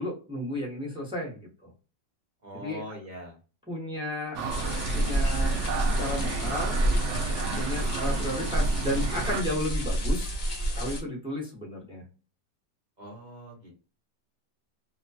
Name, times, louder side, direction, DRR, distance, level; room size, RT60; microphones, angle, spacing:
voice 1, 0.0-1.7 2.5-2.8 3.7-6.8 7.6-10.4 10.7-12.0, left 1 dB, 5° right, -4 dB, 0.7 m, -34 dB
voice 2, 2.4-3.4 7.3-7.6 13.0-13.7, equal, 40° right, -1 dB, 0.7 m, -42 dB
sound 1, 4.3-9.4, right 4 dB, 75° right, 0.6 m, -33 dB
sound 2, 4.5-11.0, right 1 dB, 60° left, 0.4 m, -28 dB
2.8 x 2.2 x 2.7 m, 0.35 s
omnidirectional pair, 1.9 m